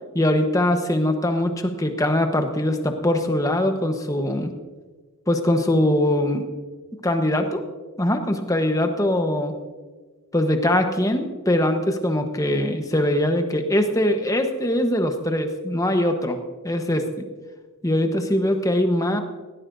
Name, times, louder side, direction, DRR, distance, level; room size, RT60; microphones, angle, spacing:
voice 1, 0.1-4.5 5.3-6.5 7.0-7.6 8.0-9.5 10.3-16.4 16.6-17.3 17.8-19.2, left 1 dB, 15° left, 6 dB, 1.0 m, -22 dB
18.0 x 17.0 x 2.7 m, 1.4 s
head